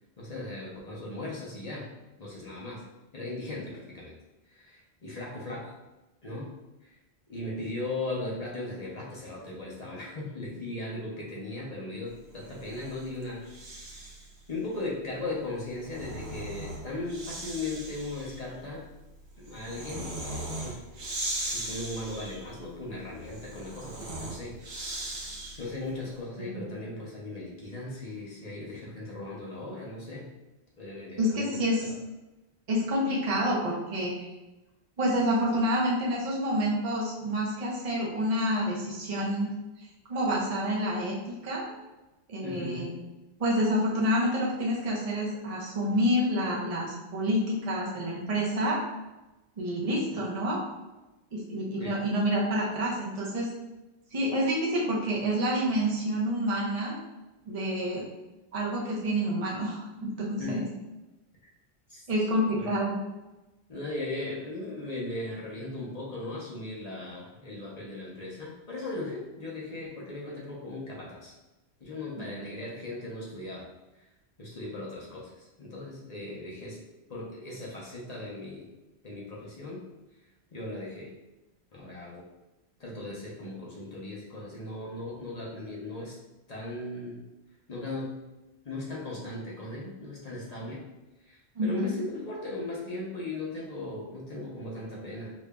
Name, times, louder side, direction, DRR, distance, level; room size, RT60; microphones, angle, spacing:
voice 1, 0.2-1.9 2.2-2.8 3.1-4.2 4.5-5.8 6.2-6.5 6.8-7.0 7.3-13.4 14.5-18.9 19.4-20.1 20.6-20.8 21.5-24.6 25.6-30.3 30.8-32.0 42.4-43.0 51.8-52.0 60.4-60.6 61.9-62.3 62.6-62.8 63.7-71.3 71.8-73.7 73.9-74.1 74.4-76.8 77.1-78.7 79.0-79.8 80.5-81.1 81.7-82.2 82.8-86.2 86.5-87.2 87.7-88.2 88.6-90.9 91.3-95.3, left 2 dB, 40° left, -5 dB, 0.8 m, -38 dB
Breathing, 12.4-14.3 15.6-25.8, right 1 dB, 70° right, 1.1 m, -39 dB
voice 2, 31.2-31.8 32.7-34.3 35.0-39.5 40.1-41.7 42.3-42.9 43.4-48.8 49.6-50.6 51.3-53.5 54.1-57.0 57.5-58.0 58.5-60.6 62.1-63.0 72.2-72.3 91.6-91.9, equal, 40° right, -5 dB, 0.7 m, -28 dB
5.0 x 2.6 x 2.2 m, 1.0 s
omnidirectional pair, 1.1 m